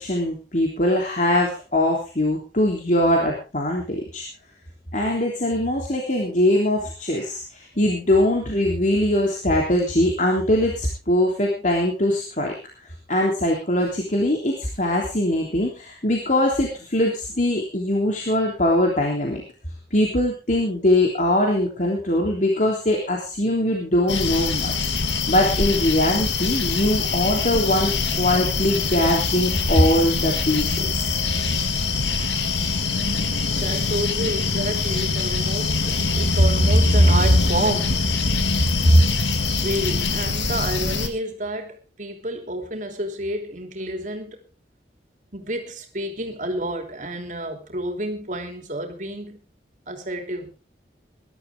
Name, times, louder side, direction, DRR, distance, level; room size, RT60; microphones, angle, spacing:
voice 1, 0.0-4.3 4.9-12.5 12.8-19.4 19.9-24.7 25.1-31.0, left 1 dB, 45° left, 3.3 m, -22 dB
sound 1, 24.1-41.1, left 4 dB, 85° left, 2.2 m, -24 dB
voice 2, 33.4-38.1 38.6-39.0 39.4-44.4 45.3-49.4 49.9-50.5, right 1 dB, 45° right, 3.2 m, -25 dB
21.0 x 12.5 x 3.6 m
head